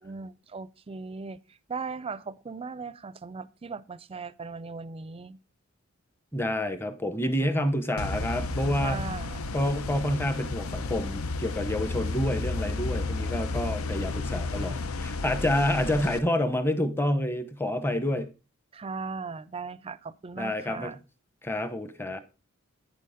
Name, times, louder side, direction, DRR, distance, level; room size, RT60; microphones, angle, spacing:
voice 1, 0.0-1.4 1.7-5.4 8.8-9.5 18.7-21.0, right 4 dB, 25° right, 0.5 m, -38 dB
voice 2, 6.3-9.0 9.5-18.3 20.4-20.9 21.4-22.2, left 1 dB, 10° left, 0.9 m, -28 dB
sound 1, 8.0-16.2, left 3 dB, 90° left, 0.8 m, -32 dB
9.6 x 6.7 x 5.0 m
head